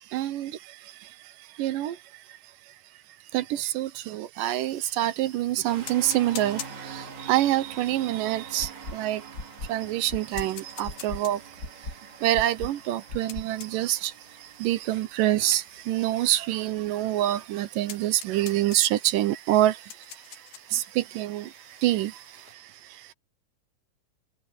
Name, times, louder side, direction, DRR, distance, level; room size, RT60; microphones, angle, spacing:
voice 1, 0.1-2.2 3.3-9.3 9.6-11.9 12.2-23.1, right 14 dB, 75° right, 2.3 m, -27 dB
sound 1, 4.5-22.5, left 9 dB, 90° left, 3.8 m, -48 dB
sound 2, 5.7-17.4, right 6 dB, 55° right, 3.9 m, -45 dB
sound 3, 8.6-8.9 9.3-9.7 10.1-10.4 10.8-11.2 11.6-11.9 12.3-12.7 13.1-13.4, left 2 dB, 30° left, 2.4 m, -35 dB
omnidirectional pair, 4.1 m